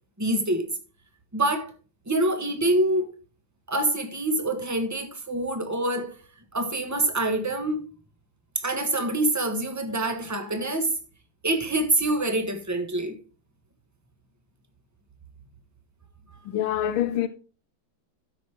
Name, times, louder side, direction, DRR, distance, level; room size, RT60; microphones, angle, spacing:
voice 1, 0.2-0.7 1.3-1.7 2.1-3.1 3.7-6.1 6.5-7.8 8.5-10.9 11.4-13.2, right 1 dB, 10° right, 1.0 m, -25 dB
voice 2, 16.5-17.3, left 11 dB, 80° left, 1.5 m, -25 dB
13.0 x 6.2 x 3.5 m
omnidirectional pair, 2.3 m